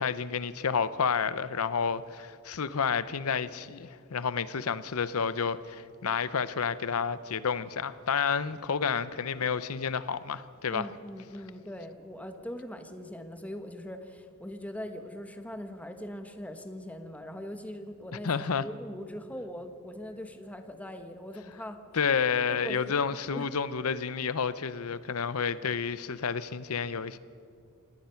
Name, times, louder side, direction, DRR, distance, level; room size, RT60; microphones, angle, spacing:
voice 1, 0.0-10.9 18.2-18.6 21.9-27.2, left 6 dB, 80° left, 0.7 m, -30 dB
voice 2, 10.7-18.3 18.6-21.8 22.5-23.0 23.3-23.5, left 1 dB, 5° left, 1.3 m, -41 dB
27.0 x 18.0 x 5.8 m
head